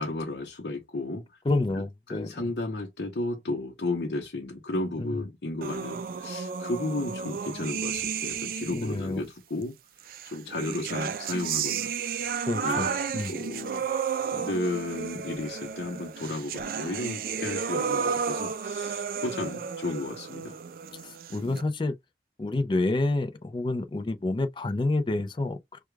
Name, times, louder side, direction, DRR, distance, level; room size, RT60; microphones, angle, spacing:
voice 1, 0.0-1.4 1.7-9.8 10.2-13.0 13.3-13.9 14.3-20.6 21.3-21.6, left 2 dB, 70° left, 0.7 m, -34 dB
voice 2, 1.5-2.5 5.0-5.1 8.7-9.2 12.5-13.3 21.0-21.9 22.4-25.6, left 2 dB, 25° left, 0.3 m, -28 dB
sound 1, 5.6-9.1 10.1-21.6, right 6 dB, 55° right, 0.3 m, -32 dB
4.7 x 2.3 x 2.2 m
head